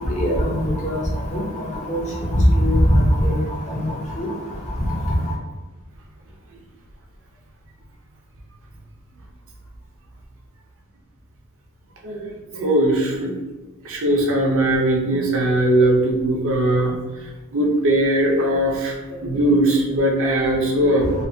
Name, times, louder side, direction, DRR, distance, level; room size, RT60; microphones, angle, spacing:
voice 1, 0.2-1.0 1.3-1.4 1.9-2.0 2.5-3.4 3.7-3.8 4.2-4.3, equal, 30° left, -3 dB, 0.6 m, -19 dB
voice 2, 12.0-13.3 13.8-17.0 17.2-21.1, right 1 dB, 60° right, -1 dB, 0.6 m, -20 dB
2.6 x 2.5 x 2.6 m, 1.1 s
head